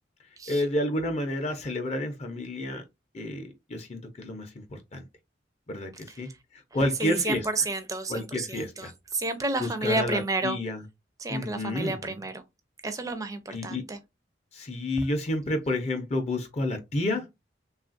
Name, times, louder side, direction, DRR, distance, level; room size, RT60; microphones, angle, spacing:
voice 1, 0.5-2.8 3.1-5.0 5.7-6.3 6.7-7.4 8.1-8.9 9.6-10.8 11.3-12.2 13.5-13.8 14.5-17.3, left 1 dB, 35° left, 0.5 m, -30 dB
voice 2, 7.0-10.6 11.2-12.4 12.8-14.0, right 2 dB, 20° right, 0.4 m, -31 dB
3.2 x 2.3 x 2.4 m
head